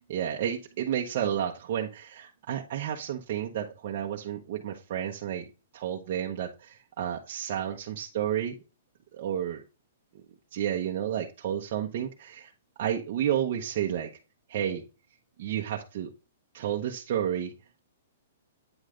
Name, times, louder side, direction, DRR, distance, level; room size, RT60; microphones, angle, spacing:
voice 1, 0.1-5.4 5.7-8.6 9.1-9.6 10.1-10.2 10.5-12.5 12.8-14.1 14.5-14.8 15.4-16.1 16.5-17.5, right 10 dB, 45° right, 0.8 m, -31 dB
8.8 x 3.2 x 3.7 m
hypercardioid pair, 165°, 0 cm